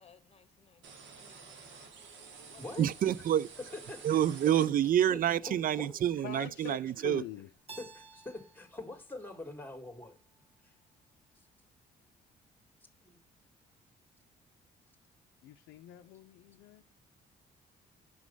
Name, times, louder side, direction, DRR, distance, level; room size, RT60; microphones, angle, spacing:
voice 1, 0.0-1.9 2.5-2.9, left 6 dB, 35° left, 1.1 m, -62 dB
sound 1, 0.8-5.2, right 5 dB, 80° right, 1.2 m, -51 dB
voice 2, 2.8-3.5 4.0-7.2, right 11 dB, 50° right, 0.4 m, -28 dB
voice 3, 3.9-4.2 4.6-4.7 5.1-6.0 7.8-10.2 13.0-13.2, left 2 dB, 10° left, 1.7 m, -44 dB
voice 4, 6.2-7.5 15.4-16.8, left 13 dB, 75° left, 0.5 m, -44 dB
Keyboard (musical), 7.7-10.5, right 4 dB, 30° right, 1.4 m, -55 dB
6.2 x 3.1 x 5.2 m
supercardioid pair, 60°, 19 cm